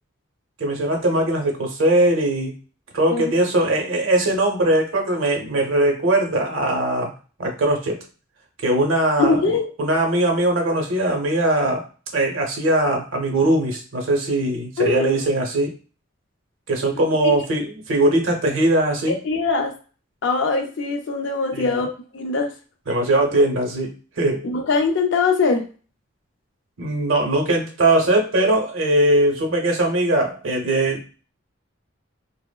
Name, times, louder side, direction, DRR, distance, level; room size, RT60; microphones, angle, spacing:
voice 1, 0.6-2.6 2.9-7.1 7.4-8.0 8.6-15.7 16.7-19.2 21.5-21.8 22.9-24.4 26.8-31.2, right 1 dB, 80° right, 2 dB, 0.7 m, -20 dB
voice 2, 9.2-9.7 14.8-15.1 17.2-17.4 19.2-19.7 20.2-22.5 24.4-25.7, left 4 dB, 60° left, 5 dB, 0.4 m, -22 dB
2.9 x 2.0 x 2.2 m, 0.37 s
head